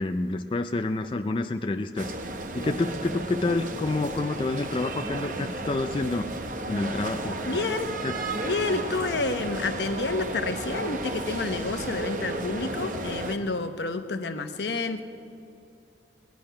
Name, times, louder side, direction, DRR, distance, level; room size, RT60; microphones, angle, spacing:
voice 1, 0.0-2.1 2.5-6.3 6.7-7.4 8.0-8.2, left 2 dB, 30° left, 6 dB, 0.4 m, -28 dB
sound 1, 2.0-13.4, right 2 dB, 45° right, 0.8 m, -33 dB
voice 2, 7.5-7.9 8.4-15.0, left 3 dB, 75° left, 7 dB, 0.9 m, -29 dB
19.5 x 10.5 x 5.7 m, 2.7 s
head